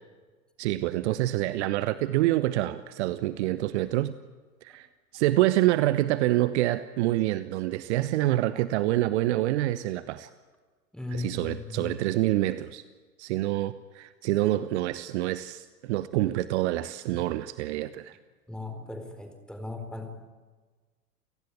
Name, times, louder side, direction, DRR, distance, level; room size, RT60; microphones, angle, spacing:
voice 1, 0.6-4.1 4.6-4.9 5.1-10.3 11.1-12.8 13.2-18.2, right 16 dB, 45° right, 14 dB, 1.1 m, -26 dB
voice 2, 10.9-11.9 17.1-17.2 18.5-20.2, left 3 dB, ahead, 6 dB, 4.1 m, -37 dB
29.0 x 18.5 x 9.8 m, 1.4 s
figure-of-eight pair, 95°, 46 cm